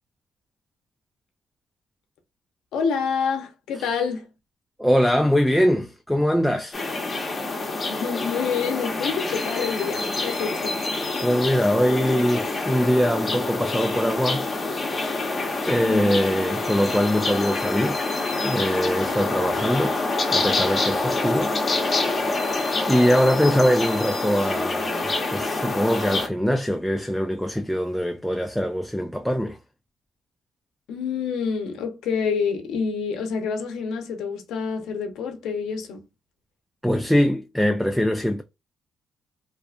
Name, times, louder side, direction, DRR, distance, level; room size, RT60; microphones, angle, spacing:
voice 1, 2.7-4.3 7.9-10.8 15.8-16.2 30.9-36.0, left 6 dB, 85° left, 0.6 m, -27 dB
voice 2, 4.8-6.8 11.2-14.5 15.0-15.3 15.7-18.1 18.4-20.0 20.3-21.6 22.9-29.6 36.8-38.4, equal, ahead, 0.3 m, -22 dB
sound 1, 6.7-26.3, left 3 dB, 35° left, 0.8 m, -26 dB
2.5 x 2.4 x 2.4 m
cardioid pair, 90°, 0 cm